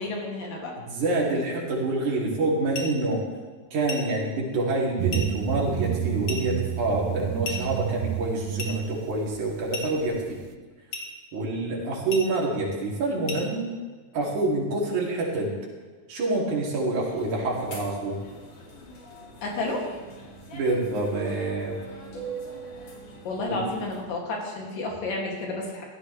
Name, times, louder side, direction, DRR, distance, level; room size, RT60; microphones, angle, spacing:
voice 1, 0.0-0.8 19.4-19.9 23.3-25.8, left 2 dB, 90° left, -2 dB, 4.2 m, -31 dB
voice 2, 0.8-3.2 3.7-10.4 11.3-13.7 14.1-15.5 16.1-18.2 20.5-21.8 23.5-23.6, right 2 dB, 65° right, -3 dB, 4.0 m, -27 dB
sound 1, 2.7-3.0 3.9-4.1 5.1-5.4 6.3-6.5 7.4-7.7 8.6-8.8 9.7-10.0 10.9-11.2 12.1-12.4 13.3-13.5, left 3 dB, 50° left, 2.3 m, -34 dB
sound 2, 5.0-10.5, right 11 dB, 90° right, 1.5 m, -30 dB
sound 3, 17.1-24.0, right 2 dB, 75° left, 4.3 m, -41 dB
16.0 x 13.5 x 3.3 m, 1.4 s
omnidirectional pair, 3.7 m